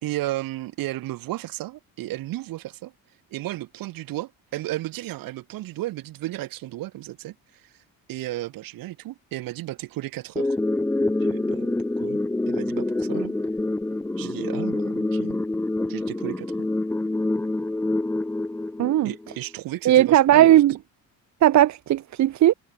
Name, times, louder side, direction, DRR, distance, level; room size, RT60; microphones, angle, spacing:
voice 1, 0.0-2.9 3.3-7.7 8.1-10.6 11.2-11.7 12.0-12.2 12.5-13.3 14.2-15.4 15.9-16.7 19.0-20.5, right 16 dB, 75° right, 2.9 m, -33 dB
sound 1, 10.4-19.4, left 2 dB, 5° left, 0.7 m, -26 dB
voice 2, 18.8-19.1 19.8-20.8 21.4-22.5, right 13 dB, 55° right, 1.5 m, -17 dB
cardioid pair, 155°, 34 cm